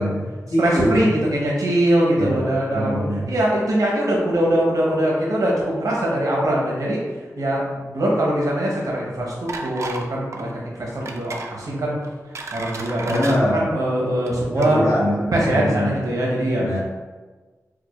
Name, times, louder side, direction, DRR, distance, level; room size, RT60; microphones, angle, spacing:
voice 1, 0.0-1.1 2.2-3.3 13.1-13.6 14.5-16.0 16.6-16.8, equal, 85° left, -8 dB, 1.2 m, -23 dB
voice 2, 0.6-7.0 7.4-7.6 7.9-12.0 12.5-14.8 15.3-16.7, right 1 dB, 80° right, -3 dB, 0.9 m, -22 dB
sound 1, 9.5-10.1 10.3-10.5 11.1-11.5 12.0-13.4 14.1-14.3 14.6-14.7, right 3 dB, 55° right, 0.3 m, -32 dB
4.7 x 2.2 x 2.4 m, 1.3 s
wide cardioid pair, 105°, 6 cm